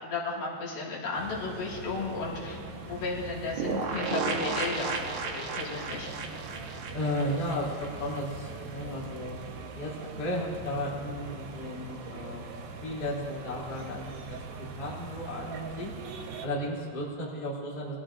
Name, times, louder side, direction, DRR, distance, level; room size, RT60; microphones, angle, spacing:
voice 1, 0.0-5.0 5.3-6.1, left 3 dB, 65° left, -5 dB, 3.7 m, -34 dB
sound 1, 1.1-16.5, right 3 dB, 90° right, 3.2 m, -42 dB
sound 2, 3.6-8.2 8.5-8.6 8.8-8.9, right 5 dB, 70° right, 2.0 m, -34 dB
voice 2, 6.9-9.4 9.7-12.4 12.8-15.9 16.4-17.9, left 1 dB, 15° left, -7 dB, 2.4 m, -34 dB
23.0 x 15.0 x 2.6 m, 2.4 s
omnidirectional pair, 4.7 m